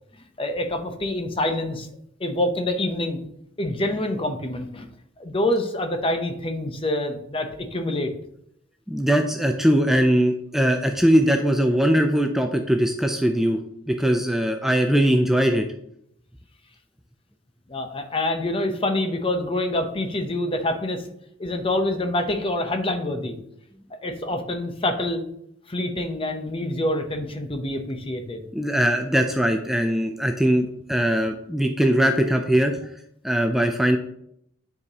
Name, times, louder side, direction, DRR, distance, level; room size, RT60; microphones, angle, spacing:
voice 1, 0.4-1.9 2.2-3.2 3.6-4.9 5.2-8.1 17.7-21.1 21.4-23.4 24.0-25.2 25.7-28.5, left 1 dB, 25° left, 5 dB, 0.7 m, -26 dB
voice 2, 8.9-13.6 13.9-15.7 28.5-32.8 33.2-34.0, equal, ahead, 4 dB, 0.4 m, -21 dB
9.3 x 4.8 x 2.9 m, 0.73 s
head